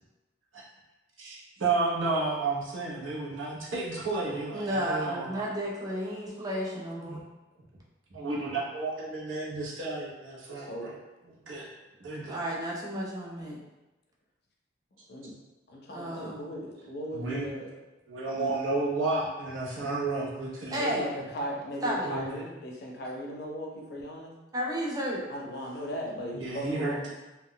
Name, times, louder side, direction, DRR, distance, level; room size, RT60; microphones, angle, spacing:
voice 1, 1.2-5.4 7.0-7.2 8.1-10.9 11.5-11.7 12.0-12.4 17.1-17.4 18.1-20.8 22.0-22.4 26.3-27.1, right 3 dB, 85° right, -5 dB, 0.8 m, -32 dB
voice 2, 4.5-7.2 12.3-13.6 15.9-16.5 20.7-21.1 21.8-22.1 24.5-25.2, equal, 20° right, -4 dB, 0.4 m, -32 dB
voice 3, 10.6-10.9 15.1-15.4 15.7-17.7 18.3-18.5 19.8-19.9 20.7-24.3 25.3-27.1, equal, 55° left, 0 dB, 0.5 m, -37 dB
2.3 x 2.1 x 3.7 m, 1.1 s
head